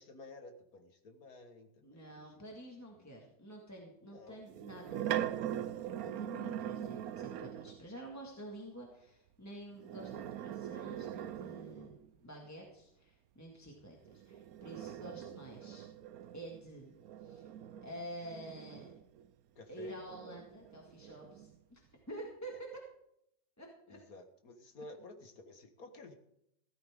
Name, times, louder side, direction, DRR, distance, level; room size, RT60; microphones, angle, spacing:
voice 1, 0.0-2.4 3.0-3.1 4.0-4.4 15.2-15.3 19.6-20.0 23.9-26.1, left 2 dB, 45° left, 6 dB, 1.8 m, -53 dB
voice 2, 1.8-12.0 12.2-14.0 14.2-15.9 16.3-16.9 17.2-17.5 17.8-18.9 19.7-21.8 22.1-22.8 23.6-24.0 24.8-24.9, right 1 dB, 10° left, -1 dB, 1.7 m, -49 dB
sound 1, 4.5-7.8 9.7-12.1 14.0-19.3 19.8-21.5, right 11 dB, 75° right, 0.8 m, -42 dB
16.0 x 13.5 x 3.7 m, 0.79 s
omnidirectional pair, 2.2 m